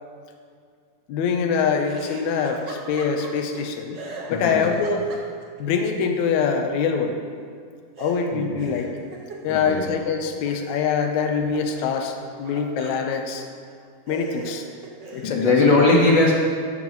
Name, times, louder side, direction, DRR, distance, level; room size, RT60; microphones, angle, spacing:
voice 1, 1.1-4.0 4.3-5.0 5.6-7.2 8.0-8.9 9.4-13.4 14.1-14.6 15.1-15.5, left 6 dB, 70° left, 4 dB, 2.1 m, -24 dB
Laughter, 1.8-3.6 3.9-5.6 8.0-11.1 11.4-13.1 13.7-13.8 14.1-15.4, right 2 dB, 50° right, 1.4 m, -39 dB
voice 2, 4.3-4.7 8.5-8.6 9.5-9.8 15.2-16.3, left 2 dB, 45° left, -4 dB, 1.8 m, -19 dB
13.5 x 12.0 x 3.2 m, 2.1 s
omnidirectional pair, 3.8 m